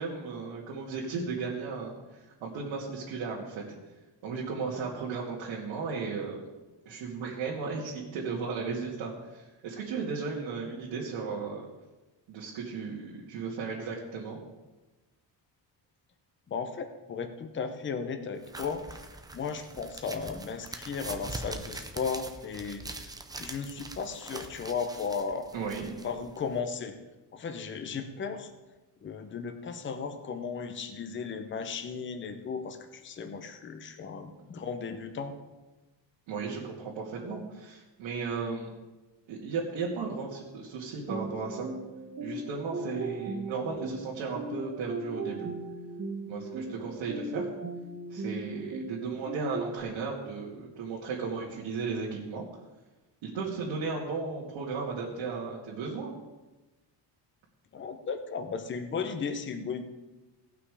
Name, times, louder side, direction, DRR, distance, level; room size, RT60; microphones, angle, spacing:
voice 1, 0.0-3.6 4.2-6.4 6.9-11.6 12.3-14.4 25.5-25.9 36.3-38.7 39.3-41.7 42.2-45.5 46.3-47.5 48.1-52.5 53.2-56.1, right 4 dB, 85° right, -5 dB, 2.2 m, -35 dB
voice 2, 16.5-18.8 19.3-25.5 26.0-27.0 27.3-28.5 29.0-35.3 57.7-59.8, left 5 dB, 25° left, 7 dB, 0.8 m, -35 dB
sound 1, 18.4-26.6, right 2 dB, 10° right, 0.5 m, -43 dB
sound 2, 41.1-49.8, right 2 dB, 35° right, 1.0 m, -38 dB
17.5 x 5.9 x 4.8 m, 1.1 s
cardioid pair, 170°, 45 cm